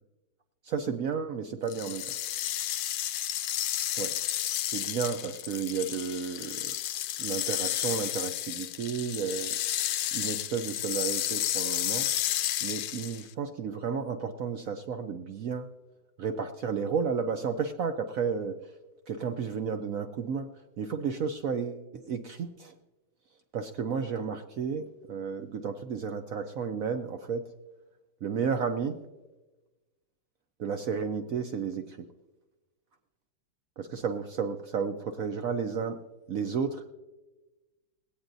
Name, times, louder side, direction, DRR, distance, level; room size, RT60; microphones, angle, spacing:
voice 1, 0.6-2.1 4.0-4.1 4.7-6.7 7.2-9.6 10.1-12.1 12.6-15.7 16.2-18.6 19.1-20.5 20.8-22.7 23.5-27.5 28.2-29.0 30.6-32.0 33.8-36.0 36.3-36.8, right 6 dB, 70° right, 7 dB, 0.8 m, -32 dB
sound 1, 1.7-13.3, left 12 dB, 80° left, 1.4 m, -32 dB
20.5 x 17.0 x 2.6 m, 1.1 s
omnidirectional pair, 2.2 m